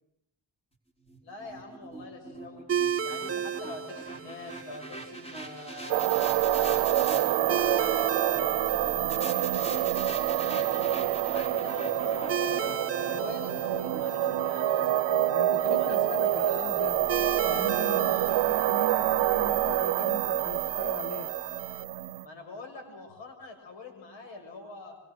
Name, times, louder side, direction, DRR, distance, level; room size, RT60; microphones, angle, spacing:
sound 1, 1.0-7.2 9.1-15.3, right 2 dB, 15° left, 4.6 m, -44 dB
voice 1, 1.2-2.7 3.0-6.2 6.6-10.1 10.5-15.1 15.5-16.9 18.1-18.4 22.2-25.0, left 3 dB, 85° left, 4 dB, 6.9 m, -44 dB
sound 2, 2.7-21.8, right 7 dB, 30° right, 0.9 m, -37 dB
sound 3, 5.9-22.2, right 13 dB, 85° right, 0.8 m, -27 dB
voice 2, 15.3-17.0 17.5-21.3, left 4 dB, 65° left, 11 dB, 1.4 m, -39 dB
25.0 x 24.0 x 6.4 m, 0.74 s
cardioid pair, 80°, 43 cm